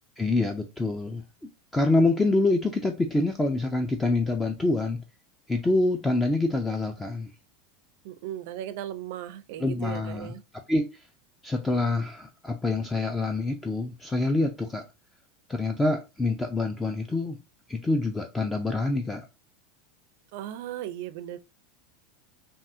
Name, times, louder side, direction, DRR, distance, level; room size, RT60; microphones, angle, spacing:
voice 1, 0.2-5.0 5.5-7.3 9.6-10.3 10.7-11.0 11.4-14.8 15.5-17.4 17.7-19.3, left 2 dB, 10° left, 0.3 m, -26 dB
voice 2, 8.0-10.4 20.3-21.4, right 12 dB, 65° right, 0.4 m, -37 dB
3.6 x 2.4 x 2.6 m
supercardioid pair, 155°, 0 cm